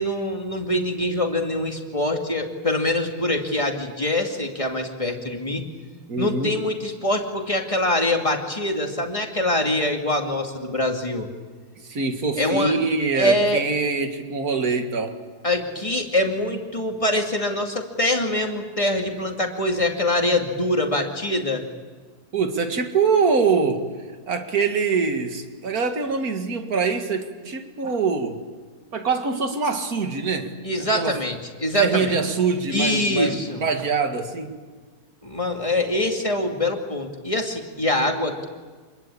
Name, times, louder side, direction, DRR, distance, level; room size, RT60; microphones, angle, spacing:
voice 1, 0.0-5.6 6.2-11.3 12.4-12.7 13.1-13.6 15.4-21.6 30.6-32.2 32.7-33.6 35.2-38.5, left 1 dB, 20° left, 2 dB, 2.5 m, -24 dB
voice 2, 6.1-6.5 11.9-15.2 22.3-24.0 24.3-28.5 28.9-31.2 31.7-34.6, right 4 dB, 70° right, 6 dB, 2.4 m, -24 dB
27.5 x 21.0 x 8.6 m, 1.5 s
omnidirectional pair, 1.7 m